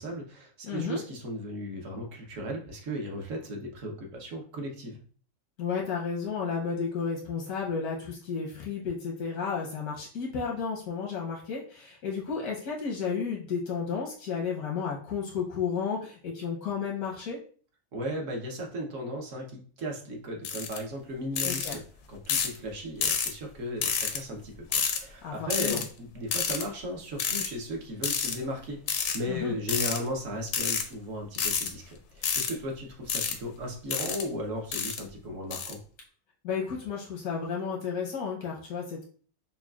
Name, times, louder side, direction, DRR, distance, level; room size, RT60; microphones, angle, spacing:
voice 1, 0.0-5.0 17.9-21.8 22.1-35.8, equal, 60° right, 1 dB, 1.2 m, -36 dB
voice 2, 0.6-1.0 5.6-17.4 21.4-21.8 25.2-25.8 29.3-29.6 36.4-39.0, left 6 dB, 85° left, -2 dB, 1.4 m, -32 dB
sound 1, 20.4-20.8 21.4-21.7 22.3-22.6 23.0-23.3 23.8-24.2 24.7-25.0 25.5-25.8 26.3-26.6 27.2-27.5 28.0-28.4 28.9-29.2 29.7-30.0 30.5-30.8 31.3-31.7 32.2-32.5 33.1-33.3 33.9-34.2 34.7-35.0 35.5-35.7, left 7 dB, 65° left, 0.8 m, -29 dB
5.7 x 2.3 x 2.3 m, 0.43 s
omnidirectional pair, 1.6 m